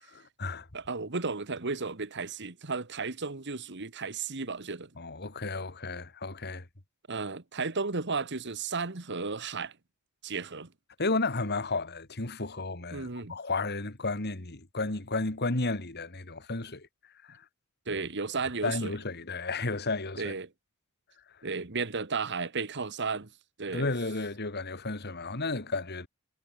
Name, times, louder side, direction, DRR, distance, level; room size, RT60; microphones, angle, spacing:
voice 1, 0.7-4.9 7.1-9.7 10.2-10.7 12.9-13.4 17.9-18.9 20.2-20.5 21.4-23.3 23.6-23.9, right 4 dB, 55° right, 1.6 m, -34 dB
voice 2, 5.0-6.7 11.0-16.9 17.2-17.4 18.6-20.3 23.7-26.1, left 3 dB, 50° left, 2.5 m, -32 dB
head